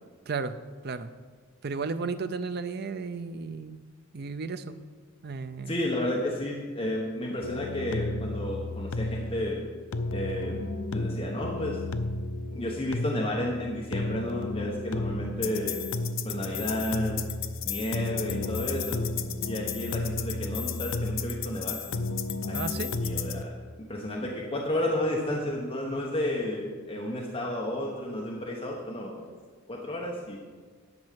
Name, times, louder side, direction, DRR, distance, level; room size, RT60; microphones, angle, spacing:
voice 1, 1.6-3.8 4.1-4.8 5.2-5.8 22.5-22.9, right 4 dB, 50° right, 11 dB, 0.5 m, -33 dB
voice 2, 5.7-9.6 10.1-10.6 10.9-11.8 12.5-15.8 16.2-17.2 17.6-19.0 19.5-21.8 22.5-22.6 23.0-29.3 29.7-30.4, left 1 dB, 25° left, -2 dB, 1.1 m, -32 dB
sound 1, 7.4-23.4, left 3 dB, 65° left, 0.5 m, -32 dB
10.5 x 5.3 x 7.5 m, 1.5 s
head